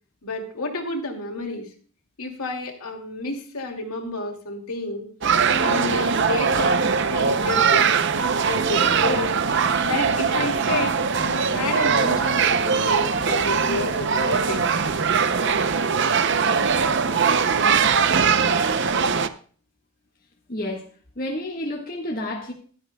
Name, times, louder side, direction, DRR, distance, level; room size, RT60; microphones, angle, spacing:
voice 1, 0.2-1.7 2.2-5.1 5.6-6.8 7.1-7.9 8.4-9.4 9.8-14.7, left 2 dB, 75° left, 2 dB, 2.5 m, -30 dB
sound 1, 5.2-19.3, right 5 dB, 50° right, 0.6 m, -21 dB
voice 2, 20.5-20.8 21.2-22.5, left 1 dB, 40° left, 0 dB, 1.5 m, -30 dB
15.0 x 12.0 x 2.3 m, 0.43 s
head